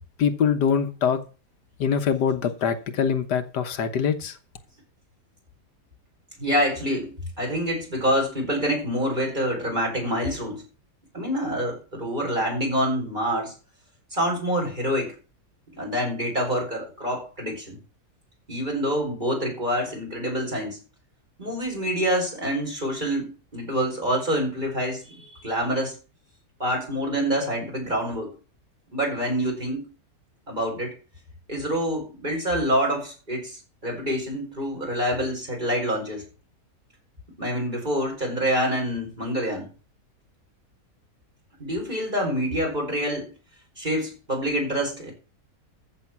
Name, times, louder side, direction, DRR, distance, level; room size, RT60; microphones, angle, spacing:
voice 1, 0.2-1.2 1.8-4.4, left 7 dB, 80° left, 1.7 m, -23 dB
voice 2, 6.4-10.6 11.1-13.5 14.1-15.1 15.7-17.8 18.5-20.8 21.4-26.0 26.6-28.3 28.9-29.9 30.5-30.9 31.5-36.2 37.4-39.7 41.6-43.3 43.8-45.1, equal, 25° right, 5.1 m, -26 dB
14.0 x 6.3 x 6.0 m
omnidirectional pair, 1.8 m